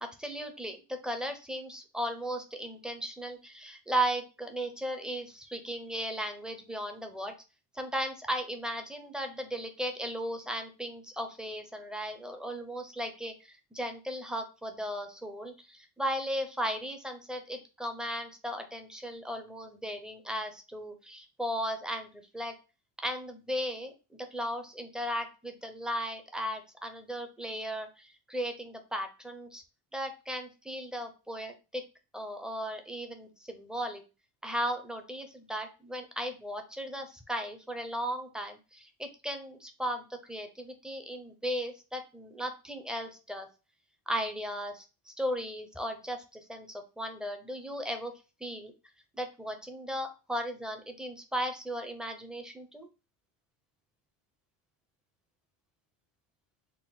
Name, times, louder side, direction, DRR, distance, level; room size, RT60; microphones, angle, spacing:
voice 1, 0.0-7.3 7.7-22.5 23.0-29.6 29.9-31.8 32.1-34.0 34.4-43.5 44.1-48.1 48.4-48.7 49.2-52.9, equal, ahead, 7 dB, 0.5 m, -36 dB
3.7 x 2.1 x 4.1 m, 0.31 s
cardioid pair, 110°, 46 cm